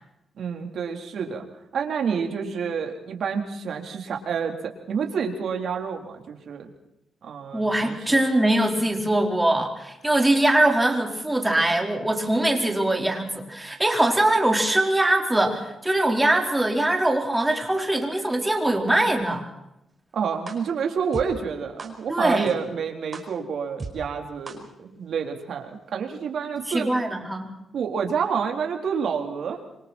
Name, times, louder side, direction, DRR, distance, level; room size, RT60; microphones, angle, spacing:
voice 1, 0.4-1.4 1.7-6.7 7.2-8.2 20.1-26.9 27.7-29.6, right 6 dB, 70° right, 3 dB, 4.0 m, -29 dB
voice 2, 7.5-19.5 22.1-22.5 26.7-27.5, right 1 dB, 10° right, 2 dB, 4.7 m, -22 dB
sound 1, 20.5-20.6 21.1-21.2 21.8-21.9 22.5-22.6 23.1-23.2 23.8-23.9 24.5-24.6, right 4 dB, 30° right, 4.7 m, -34 dB
27.0 x 25.5 x 4.5 m, 0.87 s
cardioid pair, 115°, 0 cm